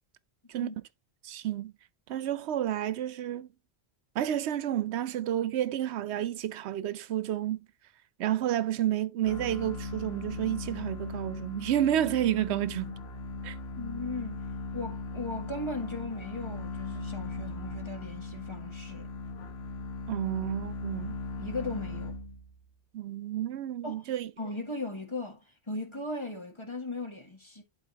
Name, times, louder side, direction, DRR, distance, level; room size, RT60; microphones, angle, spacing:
voice 1, 1.2-1.7 2.1-3.5 4.2-7.6 8.2-13.0 13.4-13.6 20.1-21.2 22.9-24.3, right 11 dB, 85° right, 0.9 m, -30 dB
sound 1, 9.2-22.6, left 2 dB, 75° left, 1.2 m, -38 dB
voice 2, 13.8-14.4 14.7-19.1 21.4-22.1 23.8-24.0 24.4-27.6, left 2 dB, 25° left, 1.7 m, -37 dB
11.5 x 4.1 x 2.8 m
omnidirectional pair, 1.1 m